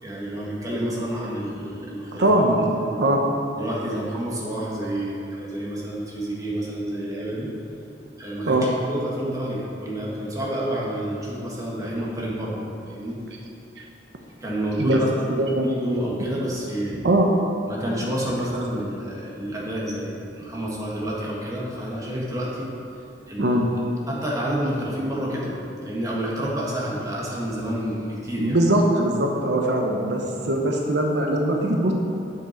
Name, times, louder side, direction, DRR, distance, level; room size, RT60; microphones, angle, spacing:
voice 1, 0.0-2.2 2.8-3.0 3.6-7.5 8.2-13.2 14.4-17.0 17.7-22.7 23.3-23.6 24.1-28.6, right 1 dB, 20° right, -5 dB, 1.7 m, -29 dB
voice 2, 2.2-3.2 8.5-8.7 13.8-13.9 14.8-15.0 15.4-15.7 17.0-17.3 23.4-23.7 28.4-31.9, right 1 dB, 75° right, 1 dB, 0.8 m, -21 dB
8.8 x 7.0 x 4.5 m, 2.7 s
head